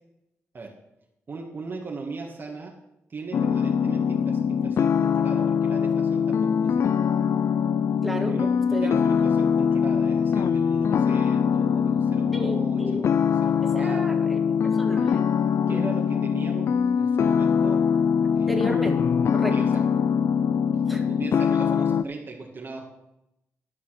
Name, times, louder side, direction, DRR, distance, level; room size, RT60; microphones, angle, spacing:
voice 1, 1.3-2.7 3.1-7.0 8.3-14.2 15.7-17.8 18.3-18.6 19.5-19.8 21.0-22.8, right 4 dB, 45° right, 0 dB, 1.8 m, -38 dB
sound 1, 3.3-22.0, left 7 dB, 60° left, 0.4 m, -23 dB
voice 2, 8.0-8.4 8.7-8.9 9.2-9.3 12.3-13.0 13.6-15.2 15.7-15.9 18.5-19.0 19.3-19.6 20.9-21.0, right 1 dB, ahead, 3 dB, 2.1 m, -32 dB
12.5 x 5.6 x 6.5 m, 0.86 s
cardioid pair, 65°, 5 cm